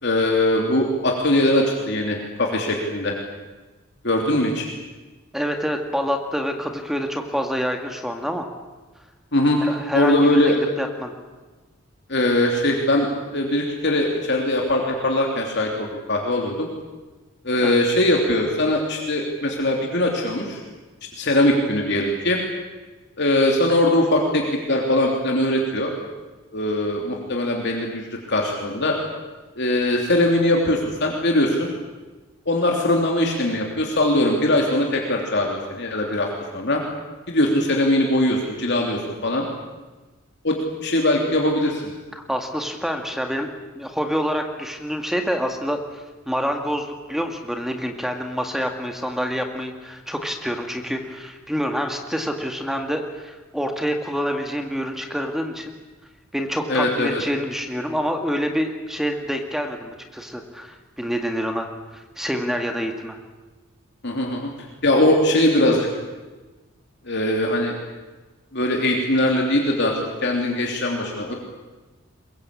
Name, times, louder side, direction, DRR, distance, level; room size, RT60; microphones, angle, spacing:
voice 1, 0.0-3.1 4.0-4.7 9.3-9.6 9.9-10.6 12.1-16.7 17.4-20.6 21.1-22.4 23.2-25.9 26.5-28.9 29.6-31.7 32.5-36.3 36.5-36.8 37.3-39.4 40.4-40.5 40.8-41.8 56.7-57.2 64.0-64.5 64.8-65.9 67.1-67.7 68.5-69.9 70.2-71.3, left 1 dB, 55° left, 0 dB, 3.1 m, -21 dB
voice 2, 5.3-8.5 9.6-10.5 10.8-11.1 17.6-17.8 42.1-43.5 43.8-55.7 56.3-63.2, equal, ahead, 4 dB, 1.9 m, -27 dB
23.0 x 22.0 x 8.5 m, 1.2 s
head